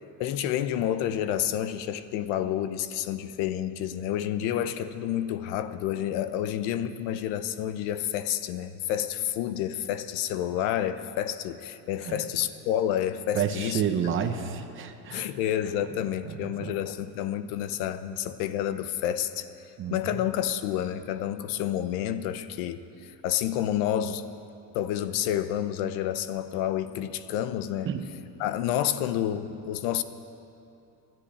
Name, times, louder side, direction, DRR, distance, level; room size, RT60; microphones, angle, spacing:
voice 1, 0.2-13.8 15.1-24.2 24.7-27.9 28.4-30.0, left 11 dB, 75° left, 12 dB, 0.9 m, -29 dB
voice 2, 12.0-12.3 13.3-15.4 16.3-16.8 19.8-20.2 27.8-28.1, right 8 dB, 30° right, 7 dB, 0.7 m, -30 dB
13.0 x 11.0 x 9.9 m, 2.8 s
cardioid pair, 175°, 43 cm